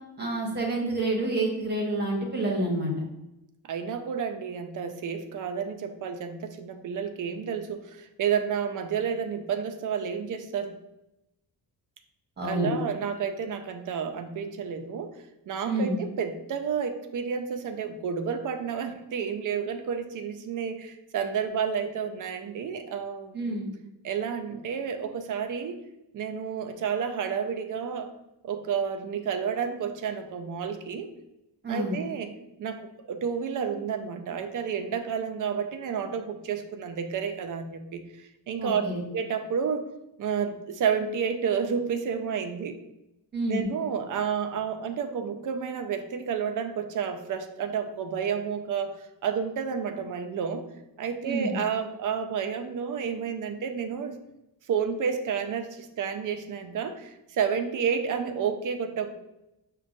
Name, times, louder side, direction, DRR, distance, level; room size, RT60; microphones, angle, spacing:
voice 1, 0.2-2.9 12.4-12.7 15.6-16.0 23.3-23.7 31.6-32.0 38.6-39.0 43.3-43.6 51.2-51.5, right 2 dB, 25° right, -1 dB, 0.9 m, -28 dB
voice 2, 3.7-10.8 12.4-15.1 15.5-23.4 24.0-25.8 26.1-28.1 28.4-31.1 31.7-32.3 32.6-38.0 38.5-38.8 39.1-39.9 40.2-42.8 43.5-49.0 49.2-50.6 51.0-54.2 54.7-59.1, right 7 dB, 50° right, 6 dB, 0.5 m, -30 dB
6.1 x 2.3 x 2.6 m, 0.91 s
wide cardioid pair, 145°, 41 cm